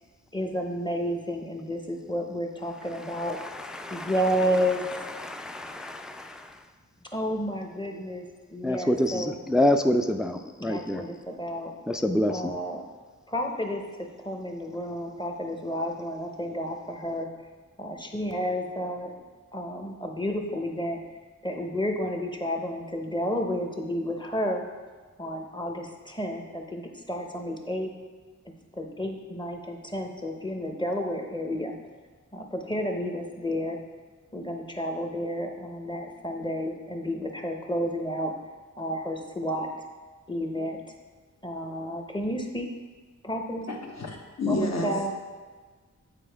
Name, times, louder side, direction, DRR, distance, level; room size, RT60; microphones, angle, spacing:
voice 1, 0.3-3.4 3.9-4.8 7.1-8.2 8.5-9.3 10.6-11.7 12.3-12.8 13.3-13.8 14.2-17.3 17.8-19.1 19.5-21.0 21.4-24.6 25.2-27.9 28.7-31.7 32.3-33.8 34.3-38.3 38.8-39.7 40.3-40.8 41.4-42.7 43.2-43.7 44.5-45.1, equal, 15° left, 2 dB, 0.7 m, -31 dB
voice 2, 3.3-4.1 5.2-6.5 8.6-11.0 11.9-12.5, left 1 dB, ahead, 6 dB, 0.3 m, -27 dB
voice 3, 43.7-44.9, left 2 dB, 60° left, 1 dB, 1.0 m, -30 dB
8.4 x 4.3 x 3.4 m, 1.4 s
wide cardioid pair, 80°, 31 cm